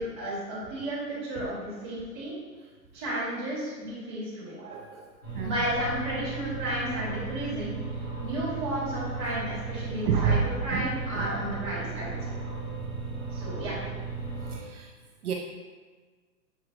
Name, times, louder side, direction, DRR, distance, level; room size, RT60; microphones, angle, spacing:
voice 1, 0.0-2.3 2.9-4.6 5.4-7.7 8.2-12.3 13.3-13.8, right 1 dB, 15° right, -12 dB, 1.1 m, -33 dB
voice 2, 4.6-5.0 5.3-5.6 10.1-10.4 10.7-10.9 11.1-11.3 14.5-14.9 15.2-15.3, right 6 dB, 65° right, 0 dB, 0.5 m, -28 dB
sound 1, 5.2-14.5, right 4 dB, 25° left, 0.8 m, -35 dB
6.2 x 3.0 x 2.4 m, 1.4 s
hypercardioid pair, 180°, 49 cm